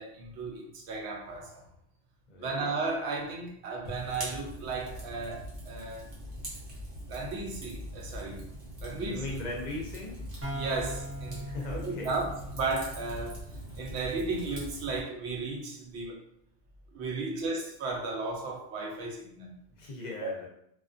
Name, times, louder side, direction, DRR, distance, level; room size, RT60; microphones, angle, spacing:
voice 1, 0.0-1.7 2.4-6.1 7.1-8.4 8.8-9.2 10.5-12.3 12.6-13.4 13.7-16.2 16.9-19.6 20.2-20.3, right 3 dB, 85° right, 0 dB, 0.9 m, -35 dB
voice 2, 2.3-2.6 8.8-10.2 11.4-12.2 17.1-17.4 19.7-20.5, left 2 dB, 50° left, -1 dB, 0.6 m, -39 dB
Fire, 3.8-15.0, equal, 60° right, 1.0 m, -42 dB
sound 1, 10.4-14.1, equal, 25° right, 0.3 m, -41 dB
2.4 x 2.3 x 2.4 m, 0.73 s
omnidirectional pair, 1.1 m